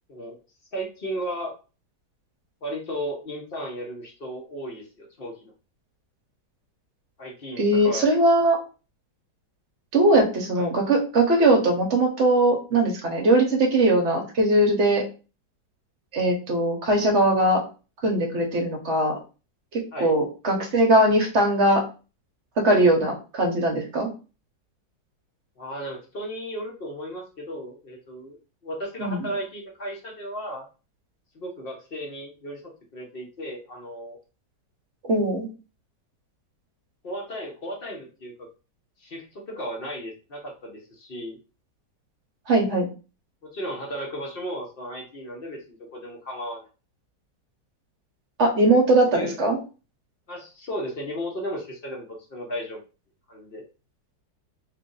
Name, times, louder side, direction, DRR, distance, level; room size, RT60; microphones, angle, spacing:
voice 1, 0.7-1.6 2.6-5.3 7.2-8.0 10.6-10.7 19.9-20.1 25.6-28.4 28.6-30.7 31.3-32.6 32.9-34.2 37.0-38.3 39.0-41.4 43.4-46.7 49.1-49.4 50.3-52.8 53.3-53.7, equal, 50° left, 0 dB, 0.7 m, -35 dB
voice 2, 7.6-8.6 9.9-15.0 16.1-17.6 18.0-19.1 19.7-21.8 22.6-24.1 29.0-29.3 35.0-35.5 42.5-42.9 48.4-49.6, right 1 dB, 50° right, 1 dB, 0.9 m, -20 dB
3.3 x 2.5 x 3.8 m, 0.33 s
omnidirectional pair, 1.9 m